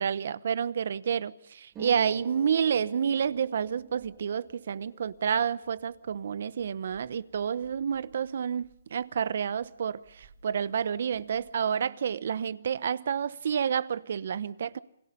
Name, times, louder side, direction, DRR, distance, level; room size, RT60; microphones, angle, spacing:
voice 1, 0.0-14.8, right 7 dB, 65° right, 0.9 m, -29 dB
Harp, 1.7-9.2 9.5-10.6 10.9-11.5, right 7 dB, 20° right, 3.1 m, -51 dB
29.5 x 21.0 x 5.4 m
hypercardioid pair, 150°, 0 cm